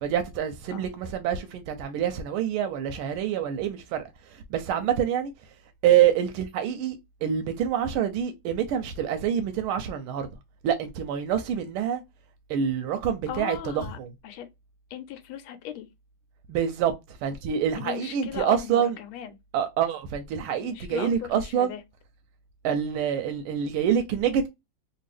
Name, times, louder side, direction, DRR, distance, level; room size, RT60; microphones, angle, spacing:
voice 1, 0.0-5.3 5.8-10.3 10.6-12.0 12.5-14.1 16.5-18.9 19.5-21.7 22.6-24.5, right 9 dB, 85° right, 1.4 m, -26 dB
voice 2, 13.3-14.5 14.9-15.9 17.7-19.3 20.6-21.8, left 9 dB, 80° left, 1.4 m, -37 dB
3.5 x 2.4 x 3.2 m
omnidirectional pair, 2.3 m